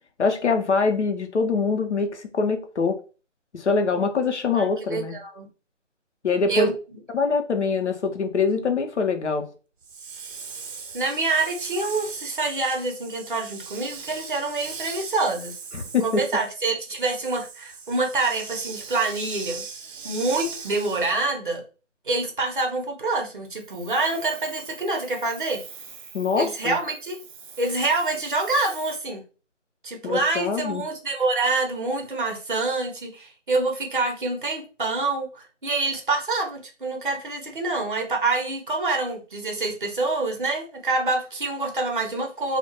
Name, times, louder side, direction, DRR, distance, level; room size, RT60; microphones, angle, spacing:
voice 1, 0.2-3.0 3.5-5.1 6.2-6.7 7.1-9.5 15.7-16.2 26.1-26.8 30.0-30.8, left 4 dB, 65° left, 0.7 m, -24 dB
voice 2, 4.5-5.5 6.5-6.7 10.9-15.6 16.0-19.6 20.0-21.6 22.1-25.6 26.4-27.2 27.6-29.2 29.8-42.6, right 3 dB, 45° right, 0.6 m, -26 dB
Hiss, 9.8-21.3 23.6-29.0, right 5 dB, 85° right, 0.6 m, -40 dB
2.2 x 2.1 x 2.9 m
figure-of-eight pair, 165°, 38 cm